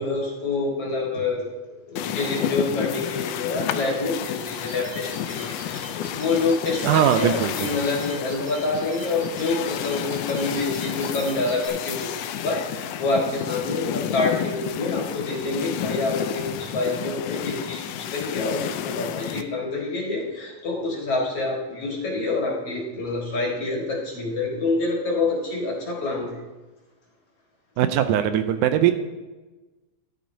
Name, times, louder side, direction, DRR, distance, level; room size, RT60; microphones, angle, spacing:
voice 1, 0.0-1.5 1.9-26.4, left 3 dB, 50° left, -2 dB, 2.6 m, -27 dB
sound 1, 2.0-19.4, left 10 dB, 85° left, 2.2 m, -31 dB
sound 2, 4.5-11.7, right 2 dB, 65° right, 3.7 m, -42 dB
voice 2, 6.8-7.7 27.8-28.9, right 10 dB, 80° right, 9 dB, 2.0 m, -20 dB
14.0 x 11.5 x 2.8 m, 1.2 s
omnidirectional pair, 3.8 m